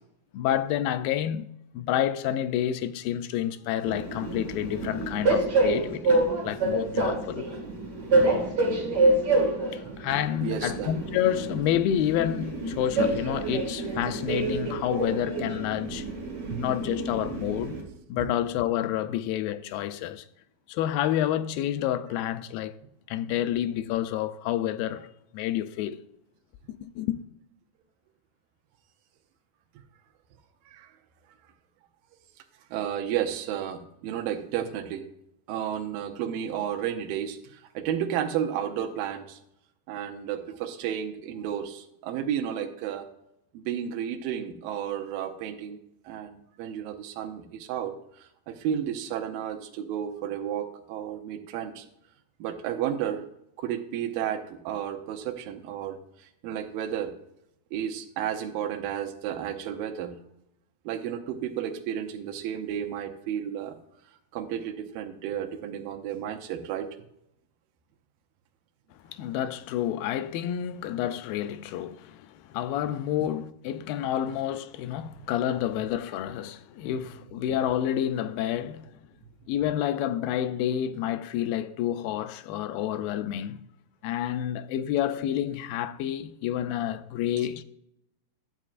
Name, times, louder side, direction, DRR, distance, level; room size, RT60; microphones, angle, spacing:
voice 1, 0.3-7.5 9.7-16.1 16.6-17.8 18.1-20.2 20.7-22.8 23.1-25.1 25.3-26.0 26.7-27.2 69.1-78.9 79.5-83.6 84.0-87.6, left 11 dB, 85° left, 2.3 m, -29 dB
Train, 3.8-17.8, right 2 dB, 40° right, 1.9 m, -27 dB
voice 2, 10.4-10.9 16.5-16.6 18.2-18.3 30.7-30.9 32.7-35.0 35.5-39.4 39.9-43.1 43.5-45.8 46.1-47.9 48.2-51.8 52.4-53.2 53.6-57.1 57.7-60.1 60.9-63.8 64.3-66.9, right 9 dB, 85° right, 2.5 m, -32 dB
11.5 x 7.4 x 2.5 m
omnidirectional pair, 4.0 m